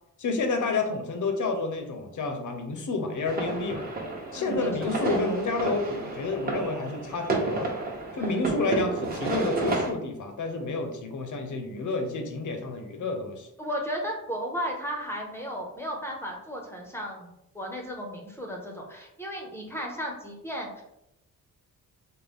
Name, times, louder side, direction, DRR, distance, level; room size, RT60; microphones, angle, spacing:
voice 1, 0.2-3.8 4.3-7.8 8.1-13.5, left 3 dB, 60° left, 5 dB, 0.7 m, -30 dB
sound 1, 3.3-9.9, right 2 dB, 25° right, 0.8 m, -31 dB
voice 2, 4.3-5.2 8.2-8.3 13.6-20.8, equal, 5° left, -1 dB, 0.6 m, -35 dB
3.8 x 2.1 x 3.5 m, 0.83 s
cardioid pair, 115°, 34 cm